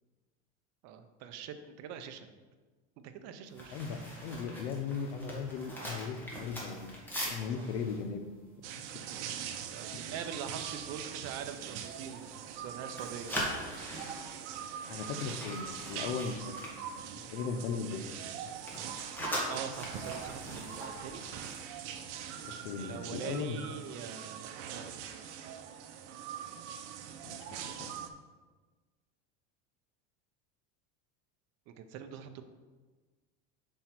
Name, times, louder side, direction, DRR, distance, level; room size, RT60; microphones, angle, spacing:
voice 1, 0.8-2.3 3.0-3.9 7.2-7.7 9.7-13.4 19.5-21.2 22.8-25.3 31.7-32.4, right 7 dB, 50° right, 8 dB, 0.7 m, -44 dB
sound 1, 3.5-9.6 9.9-10.2 10.6-10.9 11.4-12.6 12.9-17.6 17.9-22.4 22.7-22.9, equal, 5° left, 1.5 m, -42 dB
voice 2, 3.7-7.0 7.3-8.3 9.9-10.1 14.9-16.7 17.3-18.0 22.4-23.6 27.2-27.9, left 6 dB, 85° left, 7 dB, 0.9 m, -38 dB
sound 2, 8.6-28.1, right 8 dB, 85° right, 0.7 m, -43 dB
5.4 x 4.5 x 6.0 m, 1.3 s
supercardioid pair, 145°, 34 cm